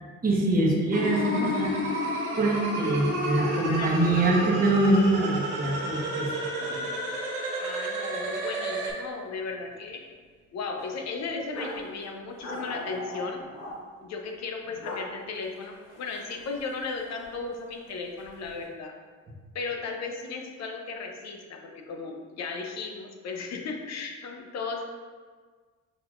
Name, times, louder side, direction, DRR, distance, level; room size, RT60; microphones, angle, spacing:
voice 1, 0.2-1.7 2.4-6.9, right 2 dB, 30° right, -3 dB, 1.1 m, -24 dB
sound 1, 0.9-8.9, right 1 dB, 90° right, 1.1 m, -31 dB
voice 2, 3.5-4.6 7.6-10.0 10.5-13.4 14.0-18.9 19.5-24.8, left 4 dB, 60° left, 3 dB, 0.6 m, -36 dB
sound 2, 8.1-8.3 8.5-8.7 9.1-9.8 10.1-10.2 10.7-11.8 12.4-13.7 14.6-15.0 15.4-17.4 17.7-18.5, equal, 85° left, 1.4 m, -40 dB
6.2 x 2.9 x 2.5 m, 1.5 s
cardioid pair, 90°, 30 cm